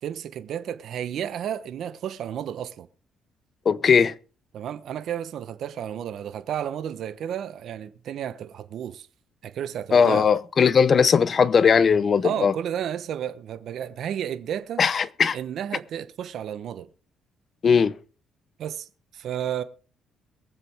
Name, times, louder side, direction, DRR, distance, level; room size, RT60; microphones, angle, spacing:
voice 1, 0.0-2.9 4.5-9.1 9.4-10.3 12.2-14.8 15.3-16.9 18.6-19.6, right 9 dB, 70° right, 0.9 m, -32 dB
voice 2, 3.6-4.1 9.9-12.5 14.8-15.4 17.6-18.0, left 6 dB, 45° left, 0.8 m, -19 dB
22.5 x 7.6 x 3.5 m
cardioid pair, 80°, 0 cm